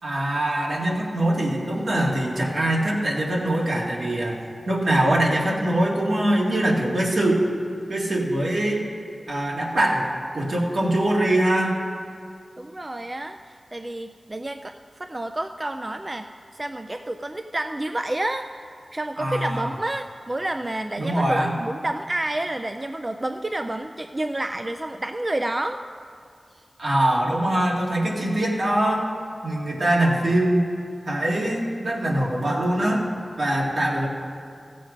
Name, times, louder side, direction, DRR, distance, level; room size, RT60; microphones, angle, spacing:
voice 1, 0.0-7.4 7.9-8.8 9.3-10.1 10.3-11.7 19.2-19.7 21.0-21.5 26.8-29.1 29.4-30.6 31.1-33.0 33.4-34.1, right 1 dB, 75° right, -3 dB, 2.1 m, -23 dB
voice 2, 12.6-25.8, right 1 dB, 30° right, 7 dB, 0.4 m, -30 dB
15.5 x 7.6 x 5.1 m, 2.3 s
wide cardioid pair, 85°, 0 cm